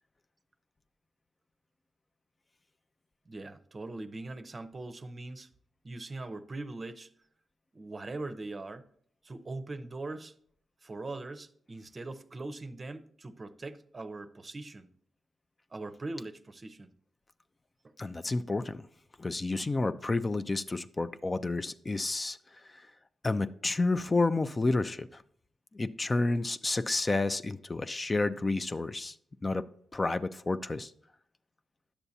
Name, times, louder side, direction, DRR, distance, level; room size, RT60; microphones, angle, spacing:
voice 1, 3.3-5.5 5.8-7.1 7.7-8.9 9.2-10.3 10.8-14.9 15.7-16.9 17.8-17.9, right 2 dB, 40° right, 0.6 m, -41 dB
voice 2, 18.0-18.9 19.2-22.9 23.2-25.2 25.7-29.2 29.4-29.6 29.9-30.9, left 3 dB, 30° left, 0.4 m, -30 dB
10.0 x 6.9 x 2.7 m
supercardioid pair, 55°, 0 cm